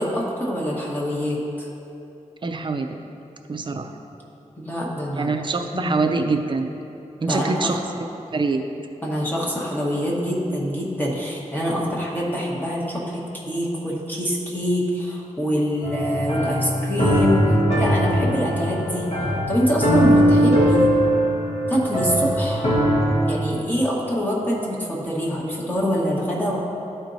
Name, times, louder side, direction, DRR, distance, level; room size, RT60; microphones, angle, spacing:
voice 1, 0.0-1.7 4.6-5.3 5.7-5.9 7.3-7.8 9.0-17.4 17.8-19.1 19.5-20.9 21.7-22.7 23.2-26.6, equal, 15° left, -5 dB, 1.4 m, -25 dB
voice 2, 2.4-3.0 3.5-3.9 5.1-6.7 7.2-8.6, right 3 dB, 40° right, 5 dB, 0.5 m, -25 dB
sound 1, 15.8-23.2, equal, 60° left, 1.5 m, -20 dB
12.5 x 4.5 x 2.7 m, 2.8 s
wide cardioid pair, 105°, 13 cm